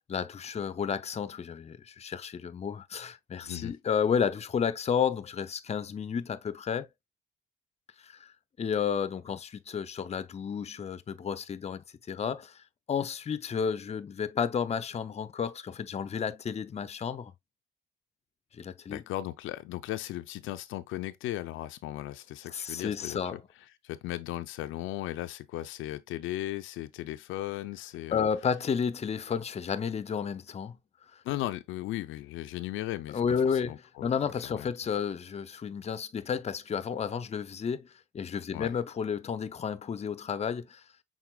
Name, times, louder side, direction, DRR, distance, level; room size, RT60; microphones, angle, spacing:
voice 1, 0.1-6.9 8.1-8.3 8.6-12.6 12.9-17.3 18.5-19.0 22.5-23.4 28.1-30.8 33.1-33.7 34.0-37.9 38.1-40.8, left 7 dB, 35° left, 0.6 m, -32 dB
voice 2, 3.4-3.7 18.9-23.4 23.8-28.3 31.2-34.1 34.4-34.7 38.5-38.7, left 15 dB, 85° left, 0.5 m, -37 dB
6.0 x 3.8 x 2.2 m
cardioid pair, 90°, 20 cm